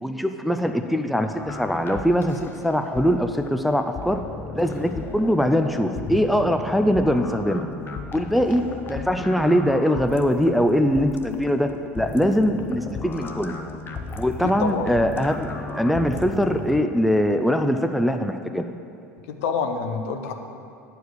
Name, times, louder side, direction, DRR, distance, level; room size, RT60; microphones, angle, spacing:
voice 1, 0.0-4.2 4.5-7.7 8.1-13.6 14.2-18.6, equal, ahead, 7 dB, 0.4 m, -22 dB
sound 1, 1.3-16.8, left 4 dB, 25° left, 0.8 m, -35 dB
voice 2, 14.4-14.9 19.3-20.3, left 5 dB, 65° left, 5 dB, 0.7 m, -27 dB
9.3 x 4.7 x 6.4 m, 2.5 s
figure-of-eight pair, 75°, 8 cm